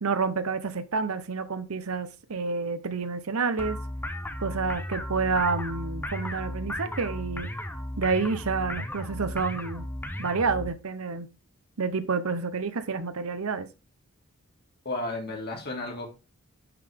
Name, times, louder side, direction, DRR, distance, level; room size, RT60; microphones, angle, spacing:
voice 1, 0.0-3.8 4.4-7.5 8.0-9.9 10.2-11.3 11.8-13.7, right 4 dB, 75° right, 0.8 m, -29 dB
sound 1, 3.6-10.7, left 1 dB, 10° left, 0.7 m, -35 dB
voice 2, 14.8-16.1, left 2 dB, 45° left, 2.1 m, -33 dB
10.5 x 3.9 x 3.5 m
head